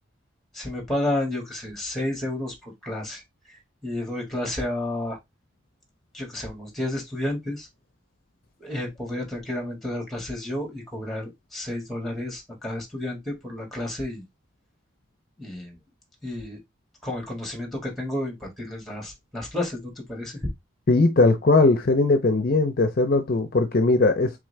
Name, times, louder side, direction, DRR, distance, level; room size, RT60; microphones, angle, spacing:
voice 1, 0.5-3.2 3.5-5.2 6.1-7.7 8.6-14.2 15.4-15.8 16.2-16.6 17.0-20.4, left 1 dB, ahead, 1.7 m, -31 dB
voice 2, 20.9-24.3, left 3 dB, 50° left, 0.6 m, -19 dB
3.7 x 3.7 x 3.2 m
head